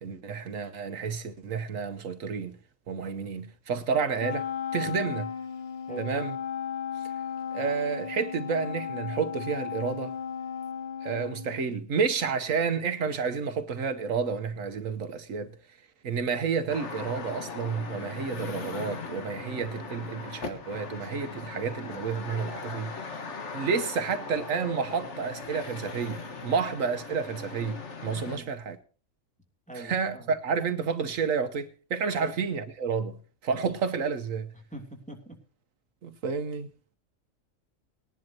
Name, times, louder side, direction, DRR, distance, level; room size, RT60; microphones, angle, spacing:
voice 1, 0.0-2.6 2.9-4.5 4.7-5.3 6.0-6.4 7.5-10.1 11.0-15.5 16.0-22.9 23.5-28.8 29.7-33.2 33.4-34.5 36.0-36.7, right 5 dB, 75° right, 1.4 m, -30 dB
Wind instrument woodwind instrument, 4.2-11.8, left 8 dB, 40° left, 0.7 m, -35 dB
sound 1, 16.7-28.4, left 4 dB, 60° left, 1.8 m, -39 dB
voice 2, 29.7-30.2 32.2-32.3 34.7-35.2, right 1 dB, 5° left, 3.0 m, -41 dB
20.0 x 10.5 x 2.8 m
omnidirectional pair, 1.4 m